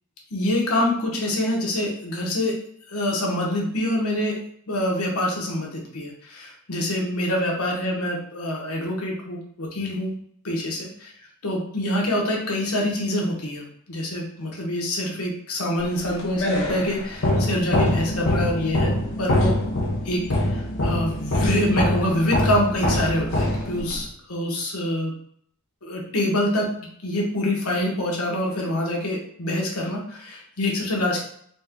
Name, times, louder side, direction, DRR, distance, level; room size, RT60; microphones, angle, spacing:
voice 1, 0.3-2.5 2.9-4.4 4.7-10.1 10.4-10.9 11.4-19.5 20.0-20.2 20.5-25.1 25.8-26.7 27.0-31.2, left 1 dB, 85° left, -1 dB, 1.1 m, -25 dB
sound 1, 15.9-24.1, left 1 dB, 60° left, 0.9 m, -24 dB
4.2 x 2.2 x 3.6 m, 0.66 s
head